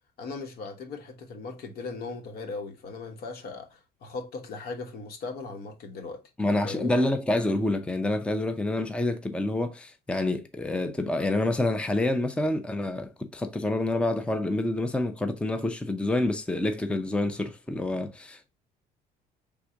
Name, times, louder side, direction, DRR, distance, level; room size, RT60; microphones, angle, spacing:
voice 1, 0.2-6.2 6.6-6.9, left 4 dB, 65° left, 1.2 m, -38 dB
voice 2, 6.4-18.5, left 2 dB, 5° left, 0.6 m, -27 dB
4.8 x 3.6 x 2.7 m
cardioid pair, 110°, 17 cm